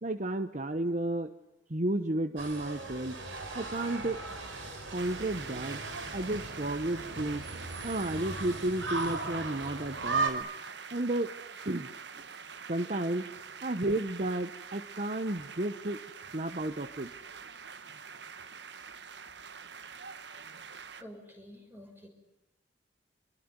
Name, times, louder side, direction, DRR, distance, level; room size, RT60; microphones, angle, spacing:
voice 1, 0.0-1.3 1.7-3.2 3.5-4.2 4.9-5.8 6.1-7.4 7.8-10.5 10.9-11.3 11.6-11.9 12.2-12.3 12.7-13.3 13.6-16.0 16.3-17.1, right 1 dB, 40° right, 9 dB, 1.1 m, -32 dB
sound 1, 2.4-10.3, right 3 dB, 85° right, 4.2 m, -37 dB
sound 2, 4.9-21.0, right 6 dB, 65° right, 1.3 m, -46 dB
voice 2, 21.0-22.1, equal, 10° right, 4 dB, 6.4 m, -49 dB
27.0 x 22.5 x 9.8 m, 0.90 s
head